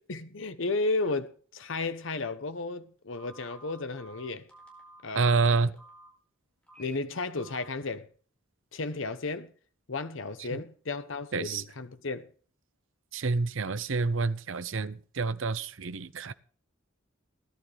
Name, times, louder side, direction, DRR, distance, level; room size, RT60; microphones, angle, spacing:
voice 1, 0.1-4.4 5.0-5.6 6.8-8.1 8.7-9.5 9.9-12.3, left 3 dB, 65° left, 0.9 m, -33 dB
Telephone, 3.1-6.1 6.6-6.9 7.3-7.7, right 1 dB, 5° left, 4.8 m, -52 dB
voice 2, 5.2-5.7 11.3-11.6 13.1-16.3, right 4 dB, 65° right, 0.7 m, -28 dB
18.0 x 11.5 x 3.4 m
head